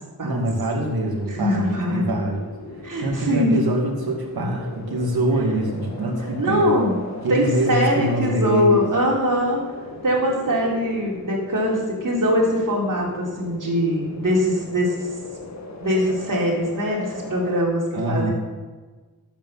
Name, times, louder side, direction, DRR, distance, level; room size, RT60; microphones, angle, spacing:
voice 1, 0.2-2.4 3.0-6.7 7.2-8.9 17.9-18.3, right 1 dB, 80° right, 1 dB, 2.5 m, -24 dB
sound 1, 0.8-17.6, left 2 dB, 50° left, 2.2 m, -38 dB
voice 2, 1.3-2.1 2.8-3.6 6.4-7.0 7.3-9.6 10.0-15.1 15.8-17.8 18.1-18.3, equal, 60° right, -3 dB, 3.9 m, -22 dB
12.5 x 8.7 x 5.8 m, 1.3 s
wide cardioid pair, 90°, 36 cm